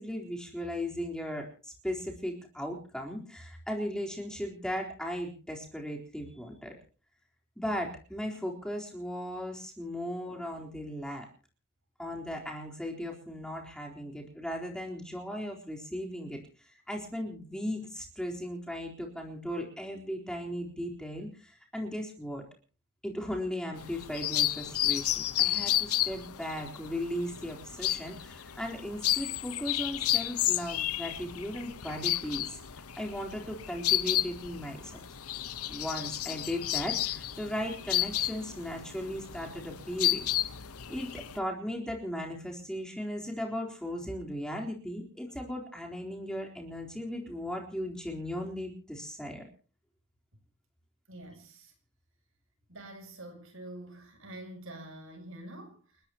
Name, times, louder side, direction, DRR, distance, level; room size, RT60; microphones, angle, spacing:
voice 1, 0.0-6.7 7.6-11.3 12.0-16.4 16.6-22.4 23.0-32.6 33.0-35.0 35.7-40.3 40.9-49.4, equal, 5° left, 0 dB, 3.9 m, -37 dB
sound 1, 23.8-41.4, left 13 dB, 85° left, 1.1 m, -32 dB
voice 2, 51.1-51.7 52.7-56.0, right 1 dB, 60° right, 5 dB, 7.6 m, -46 dB
30.0 x 13.5 x 2.9 m, 0.39 s
head